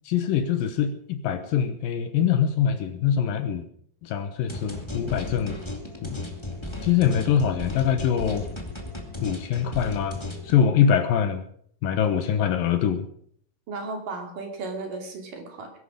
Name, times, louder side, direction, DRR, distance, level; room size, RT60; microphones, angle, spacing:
voice 1, 0.1-3.6 4.0-5.6 6.0-6.2 6.8-8.5 9.2-10.1 10.4-11.4 11.8-13.1, left 8 dB, 70° left, 8 dB, 2.6 m, -23 dB
sound 1, 4.5-10.5, left 2 dB, 10° left, 1.2 m, -35 dB
voice 2, 13.7-15.7, right 3 dB, 60° right, 3 dB, 4.2 m, -35 dB
21.0 x 11.0 x 5.1 m, 0.63 s
omnidirectional pair, 4.6 m